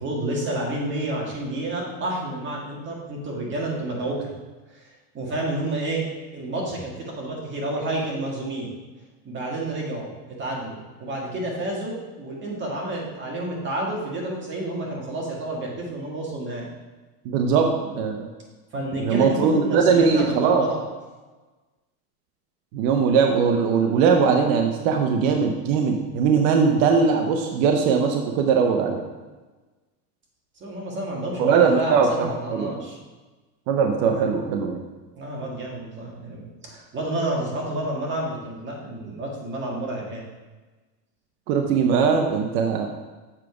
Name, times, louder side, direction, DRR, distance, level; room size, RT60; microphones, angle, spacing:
voice 1, 0.0-4.3 4.7-6.1 6.3-8.7 9.2-16.7 18.7-20.8 30.6-33.0 35.1-40.2, right 1 dB, 25° right, -2 dB, 1.7 m, -30 dB
voice 2, 17.2-18.3 19.0-20.7 22.7-29.0 31.4-32.8 33.7-34.8 41.5-42.9, right 5 dB, 55° right, 3 dB, 0.8 m, -20 dB
7.5 x 5.0 x 4.8 m, 1.2 s
supercardioid pair, 155°, 49 cm